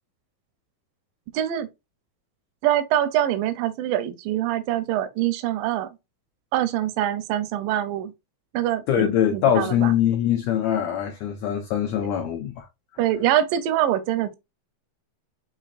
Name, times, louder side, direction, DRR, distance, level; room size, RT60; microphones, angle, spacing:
voice 1, 1.3-1.7 2.6-5.9 6.5-8.1 8.5-9.9 13.0-14.4, right 12 dB, 85° right, 2.2 m, -24 dB
voice 2, 8.9-12.7, left 10 dB, 80° left, 1.6 m, -23 dB
6.6 x 2.9 x 2.4 m
omnidirectional pair, 4.0 m